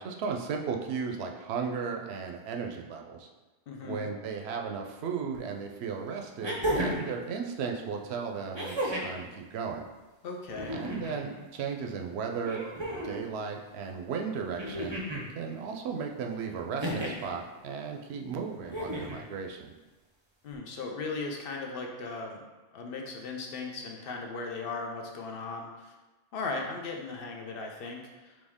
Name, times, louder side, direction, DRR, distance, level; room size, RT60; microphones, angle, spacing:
voice 1, 0.0-3.3 3.8-9.9 10.7-12.6 13.0-15.0 15.3-19.7, right 6 dB, 75° right, 3 dB, 0.8 m, -35 dB
voice 2, 3.7-4.1 10.2-10.8 20.4-22.4 22.7-25.9 26.3-28.3, left 3 dB, 60° left, 2 dB, 0.8 m, -37 dB
sound 1, 5.3-5.4 6.4-7.1 8.5-9.2 10.5-11.2 12.4-13.2 14.6-15.3 16.8-17.3 18.6-19.2 20.5-20.6, equal, 30° right, 0.6 m, -33 dB
4.3 x 3.1 x 3.5 m, 1.2 s
omnidirectional pair, 1.1 m